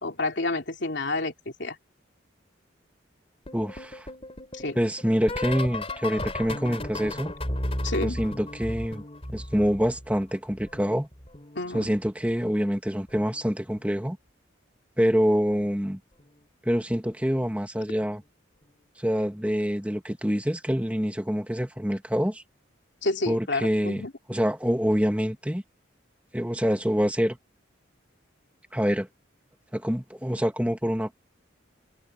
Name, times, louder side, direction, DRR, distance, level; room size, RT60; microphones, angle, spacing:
voice 1, 0.0-1.3 1.6-1.8 4.5-4.8 7.8-8.2 11.5-11.9 23.0-24.1, left 2 dB, 65° left, 3.1 m, -29 dB
sound 1, 3.5-10.2 10.5-12.1 13.1-13.4 13.7-14.0 15.6-15.9 16.2-16.4 18.0-18.1, left 1 dB, 30° left, 5.1 m, -35 dB
voice 2, 3.5-4.1 4.7-7.3 8.0-9.0 9.3-11.1 11.7-14.2 15.0-16.0 16.6-18.2 19.0-22.4 23.3-24.0 24.3-25.6 26.3-27.4 28.7-29.1 29.7-31.1, equal, 5° right, 1.8 m, -26 dB
head